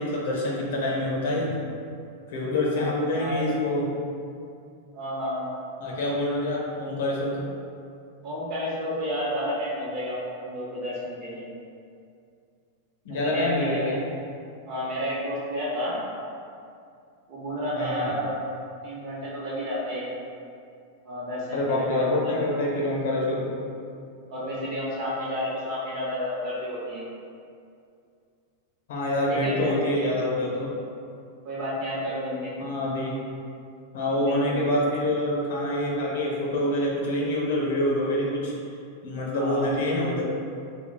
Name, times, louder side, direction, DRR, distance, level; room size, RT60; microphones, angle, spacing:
voice 1, 0.0-1.6 2.3-3.9 5.8-7.4 13.0-14.0 17.7-18.1 21.5-23.6 28.9-30.7 32.6-33.1 33.9-38.5 39.0-40.2, left 1 dB, 70° left, -2 dB, 0.6 m, -26 dB
voice 2, 2.7-3.4 4.9-5.5 8.2-11.5 13.2-14.0 14.6-16.0 17.3-18.4 18.8-20.1 21.0-22.3 24.3-27.0 29.3-29.8 31.4-32.5 34.2-34.8 39.3-39.7, equal, 40° right, -6 dB, 0.7 m, -31 dB
2.3 x 2.1 x 3.3 m, 2.4 s
supercardioid pair, 160°, 0 cm